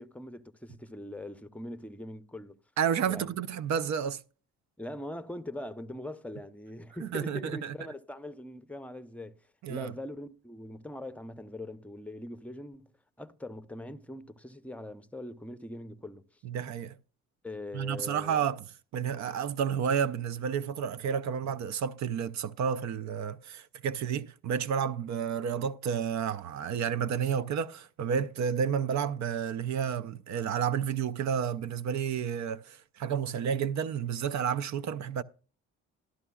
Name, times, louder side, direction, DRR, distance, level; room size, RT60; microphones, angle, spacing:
voice 1, 0.0-2.6 3.1-3.3 4.8-12.9 13.2-16.4 17.4-18.4, left 1 dB, 5° left, 0.7 m, -42 dB
voice 2, 2.8-4.2 7.1-7.7 9.6-9.9 16.4-17.0 17.7-18.6 18.9-35.2, right 7 dB, 65° right, 0.5 m, -31 dB
12.5 x 12.0 x 2.3 m
cardioid pair, 90°, 30 cm